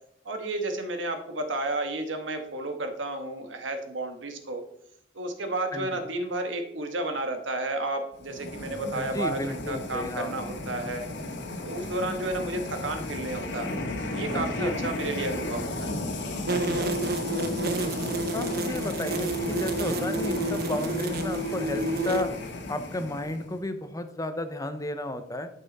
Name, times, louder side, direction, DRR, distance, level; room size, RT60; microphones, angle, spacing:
voice 1, 0.2-4.6 5.1-11.1 11.6-13.7 14.1-16.3, right 2 dB, 90° right, 6 dB, 1.4 m, -32 dB
sound 1, 8.2-23.6, left 2 dB, 70° left, 1.5 m, -34 dB
voice 2, 8.9-10.3 14.6-14.7 16.5-17.0 17.8-18.0 18.3-22.3 22.7-25.5, left 1 dB, 20° left, 9 dB, 0.7 m, -33 dB
sound 2, 16.5-22.2, right 2 dB, 55° right, 0.8 m, -29 dB
11.5 x 5.6 x 4.1 m, 0.72 s
head